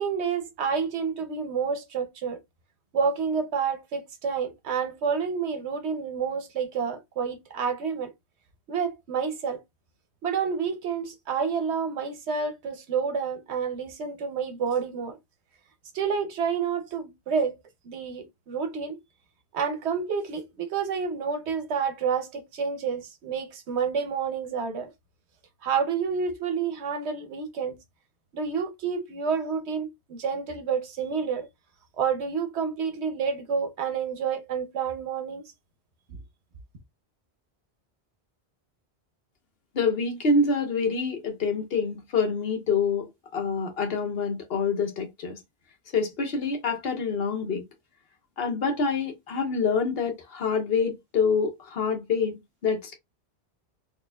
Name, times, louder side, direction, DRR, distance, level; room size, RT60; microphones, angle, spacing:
voice 1, 0.0-2.4 2.9-8.1 8.7-9.6 10.2-15.2 15.9-17.6 17.8-19.0 19.5-24.9 25.6-27.8 28.3-31.5 32.0-35.4, right 6 dB, 90° right, 1.1 m, -29 dB
voice 2, 39.7-45.4 45.9-47.6 48.4-52.9, left 4 dB, 65° left, 1.2 m, -26 dB
4.3 x 2.9 x 2.2 m
omnidirectional pair, 1.1 m